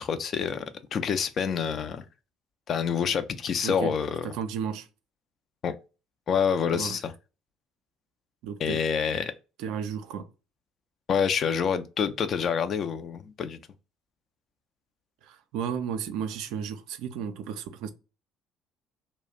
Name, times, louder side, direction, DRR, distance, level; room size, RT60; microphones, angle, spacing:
voice 1, 0.0-2.0 2.7-4.3 5.6-5.7 6.3-7.1 8.6-9.3 11.1-13.6, left 7 dB, 45° left, 0.4 m, -27 dB
voice 2, 3.6-4.0 4.2-4.9 6.7-7.0 8.4-8.8 9.6-10.3 15.2-17.9, right 7 dB, 65° right, 0.3 m, -33 dB
2.3 x 2.0 x 3.8 m
figure-of-eight pair, 55°, 0 cm